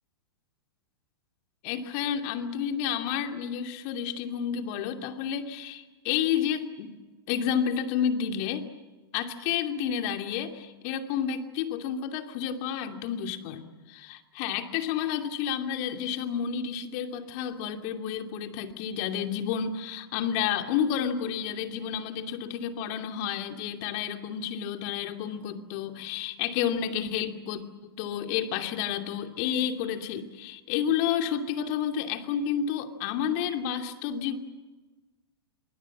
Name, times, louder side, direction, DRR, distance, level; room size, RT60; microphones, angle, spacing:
voice 1, 1.6-6.9 7.3-8.6 9.1-34.4, left 8 dB, 45° left, 5 dB, 2.7 m, -30 dB
26.5 x 24.0 x 7.4 m, 1.2 s
hypercardioid pair, 110°, 13 cm